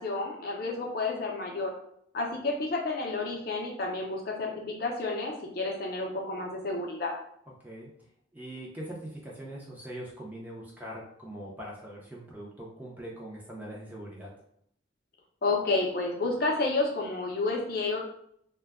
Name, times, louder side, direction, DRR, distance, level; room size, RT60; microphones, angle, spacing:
voice 1, 0.0-1.7 2.1-7.1 15.4-18.0, left 3 dB, 50° left, 0 dB, 0.5 m, -30 dB
voice 2, 8.3-14.3, right 1 dB, 10° right, -4 dB, 0.5 m, -42 dB
2.2 x 2.0 x 3.4 m, 0.69 s
head